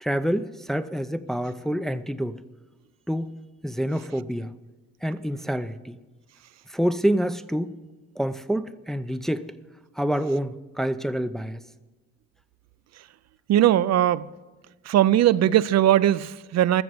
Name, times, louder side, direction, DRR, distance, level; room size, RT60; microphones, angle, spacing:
voice 1, 0.0-2.4 3.1-3.4 3.6-4.5 5.0-6.0 6.7-7.7 8.2-9.5 10.0-11.6, equal, ahead, 0.5 m, -27 dB
voice 2, 13.5-14.3 14.9-16.8, right 12 dB, 60° right, 0.5 m, -19 dB
14.0 x 6.9 x 9.6 m
cardioid pair, 90°, 30 cm